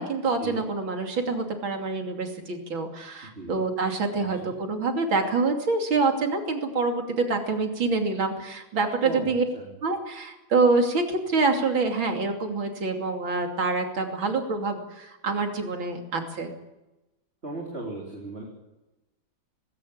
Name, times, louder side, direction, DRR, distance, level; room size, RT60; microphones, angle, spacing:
voice 1, 0.0-9.4 9.8-16.5, right 3 dB, 85° right, 4 dB, 3.6 m, -26 dB
voice 2, 4.2-4.5 9.0-9.7 17.4-18.4, right 2 dB, 30° right, -2 dB, 4.2 m, -37 dB
19.5 x 17.0 x 8.8 m, 0.98 s
omnidirectional pair, 2.1 m